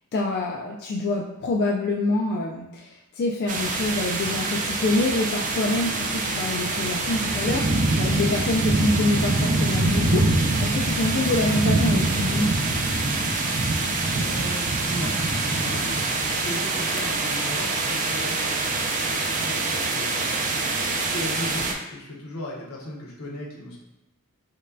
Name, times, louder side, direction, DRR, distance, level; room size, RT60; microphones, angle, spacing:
voice 1, 0.1-12.5, left 2 dB, 45° left, -1 dB, 0.3 m, -26 dB
sound 1, 3.5-21.7, right 2 dB, 35° right, 0.4 m, -24 dB
voice 2, 14.1-15.1 15.5-18.6 19.0-20.4 21.0-23.8, left 1 dB, 80° left, -3 dB, 0.9 m, -36 dB
5.1 x 2.2 x 2.6 m, 0.94 s
head